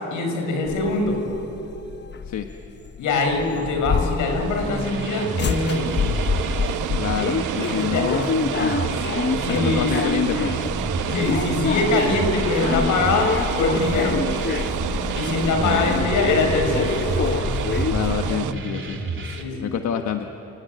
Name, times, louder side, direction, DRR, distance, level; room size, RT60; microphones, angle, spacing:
voice 1, 0.1-1.2 3.0-6.1 7.7-8.1 8.8-10.0 11.0-14.2 15.1-17.0 19.4-19.6, left 3 dB, 85° left, 3 dB, 6.6 m, -23 dB
sound 1, 0.6-18.4, left 6 dB, 35° left, 1.0 m, -27 dB
sound 2, 4.2-18.5, right 12 dB, 90° right, 0.9 m, -30 dB
sound 3, 4.6-19.4, right 3 dB, 40° right, 3.2 m, -31 dB
voice 2, 7.0-8.3 8.6-8.8 9.4-10.7 15.6-16.1 17.9-19.2 19.6-20.3, left 8 dB, 65° left, 6 dB, 1.4 m, -27 dB
29.0 x 19.0 x 9.3 m, 2.9 s
cardioid pair, 90°, 30 cm